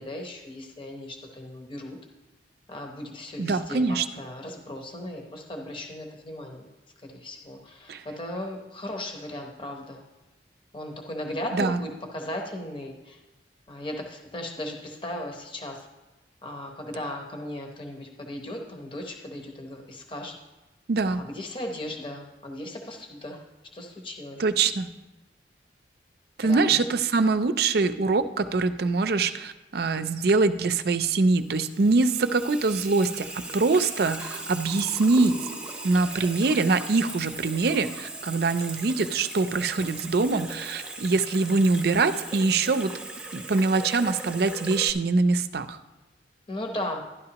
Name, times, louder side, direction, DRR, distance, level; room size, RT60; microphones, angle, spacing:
voice 1, 0.0-2.0 2.7-6.7 7.0-10.0 10.7-13.2 13.7-15.9 16.4-20.4 21.1-23.4 23.7-24.4 26.4-26.7 46.5-47.0, left 1 dB, 30° left, 2 dB, 0.9 m, -37 dB
voice 2, 3.4-4.0 7.9-8.0 11.5-11.8 20.9-21.2 24.4-24.9 26.4-35.3 35.8-42.9 43.3-45.8, right 3 dB, 55° right, 11 dB, 0.5 m, -24 dB
Water tap faucet / Sink (filling or washing), 31.3-44.9, right 2 dB, 5° right, 0.8 m, -39 dB
12.0 x 10.5 x 2.9 m, 1.1 s
head